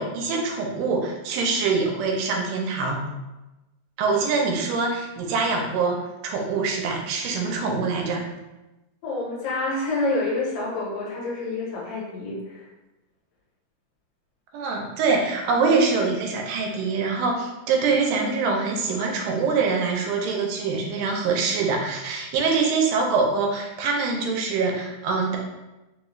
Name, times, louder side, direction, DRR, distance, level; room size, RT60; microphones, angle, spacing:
voice 1, 0.0-3.0 4.0-8.2 14.5-25.4, right 4 dB, 80° right, 0 dB, 2.2 m, -24 dB
voice 2, 9.0-12.7, left 2 dB, 75° left, -4 dB, 2.6 m, -28 dB
5.5 x 2.3 x 3.1 m, 1.0 s
omnidirectional pair, 4.0 m